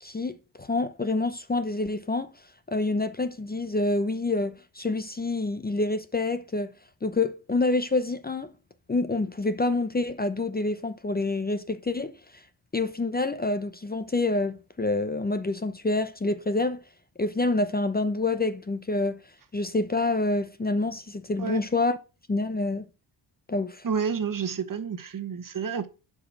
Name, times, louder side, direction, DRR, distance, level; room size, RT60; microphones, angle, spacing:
voice 1, 0.0-2.3 2.7-6.7 7.0-8.5 8.9-12.4 12.7-16.8 17.2-19.2 19.5-22.0 22.3-22.9 23.5-23.8, left 2 dB, 20° left, 0.8 m, -27 dB
voice 2, 23.8-25.9, right 6 dB, 45° right, 1.3 m, -29 dB
11.5 x 5.3 x 6.0 m
wide cardioid pair, 140°, 47 cm